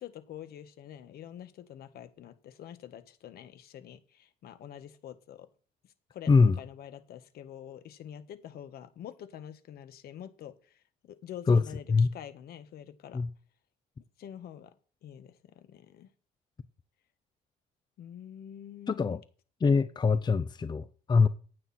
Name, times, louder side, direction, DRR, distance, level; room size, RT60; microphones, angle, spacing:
voice 1, 0.0-5.5 6.1-13.2 14.2-14.7 15.0-16.1 18.0-19.2, left 10 dB, 65° left, 1.6 m, -46 dB
voice 2, 6.3-6.6 11.5-12.1 13.1-13.3 18.9-19.2 19.6-21.3, left 4 dB, 25° left, 0.7 m, -24 dB
16.0 x 9.4 x 4.4 m
cardioid pair, 110°, 17 cm